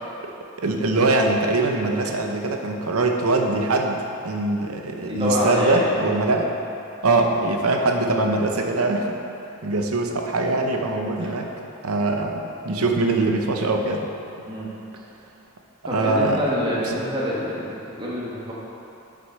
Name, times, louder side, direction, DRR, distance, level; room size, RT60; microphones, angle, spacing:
voice 1, 0.6-6.5 7.0-9.2 9.6-11.5 11.8-14.1 15.9-16.4, right 2 dB, 85° right, 3 dB, 0.8 m, -22 dB
voice 2, 5.0-5.8 11.2-11.3 14.5-14.7 15.8-18.5, left 1 dB, 20° right, -7 dB, 1.5 m, -26 dB
6.5 x 6.1 x 5.6 m, 2.8 s
head